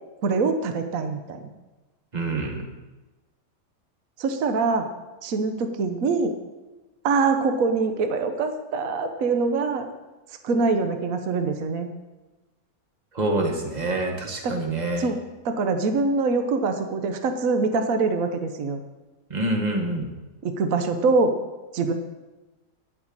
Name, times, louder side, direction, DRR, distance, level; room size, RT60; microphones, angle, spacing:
voice 1, 0.2-1.5 4.2-4.9 5.2-6.3 7.0-9.9 10.4-11.9 14.4-14.6 15.0-15.2 15.4-18.8 20.4-21.3 21.7-21.9, right 4 dB, 55° right, 7 dB, 1.3 m, -24 dB
voice 2, 2.1-2.7 13.1-15.0 19.3-20.1, right 2 dB, 25° right, 2 dB, 1.7 m, -26 dB
12.5 x 6.2 x 8.8 m, 1.1 s
omnidirectional pair, 1.8 m